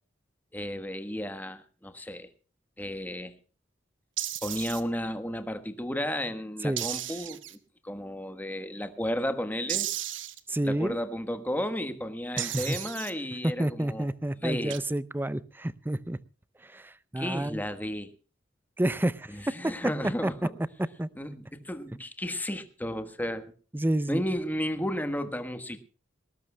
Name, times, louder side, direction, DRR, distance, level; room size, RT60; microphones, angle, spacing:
voice 1, 0.5-2.3 2.8-3.3 4.4-7.6 7.8-9.9 10.6-14.1 14.4-14.8 17.2-18.1 19.3-20.5 21.2-23.5 24.1-25.8, equal, 10° left, 1.4 m, -33 dB
sound 1, 4.2-4.8 6.8-7.6 9.7-10.4 12.4-13.1 14.7-14.8, right 13 dB, 75° right, 1.2 m, -34 dB
voice 2, 10.5-11.0 12.4-12.8 13.4-16.2 16.6-17.6 18.8-19.7 20.2-20.3 21.0-21.1 23.7-24.2, right 1 dB, 10° right, 0.6 m, -29 dB
19.5 x 19.0 x 2.3 m
head